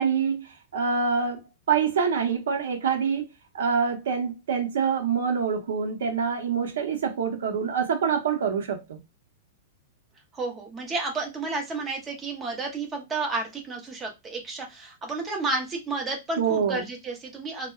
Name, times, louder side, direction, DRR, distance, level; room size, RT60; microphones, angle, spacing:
voice 1, 0.0-1.4 1.7-3.3 3.5-9.0 16.4-16.8, right 6 dB, 85° right, 0.6 m, -26 dB
voice 2, 10.3-17.7, right 3 dB, 15° right, 0.6 m, -31 dB
2.7 x 2.0 x 2.3 m
supercardioid pair, 165°, 0 cm